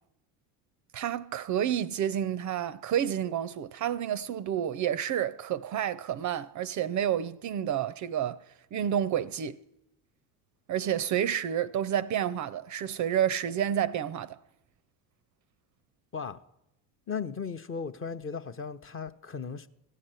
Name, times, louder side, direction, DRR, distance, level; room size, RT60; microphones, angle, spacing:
voice 1, 0.9-8.4 8.7-9.6 10.7-14.4, right 10 dB, 40° right, 0.5 m, -29 dB
voice 2, 17.1-19.7, left 5 dB, 25° left, 0.7 m, -36 dB
15.5 x 6.5 x 9.0 m
hypercardioid pair, 75°, 48 cm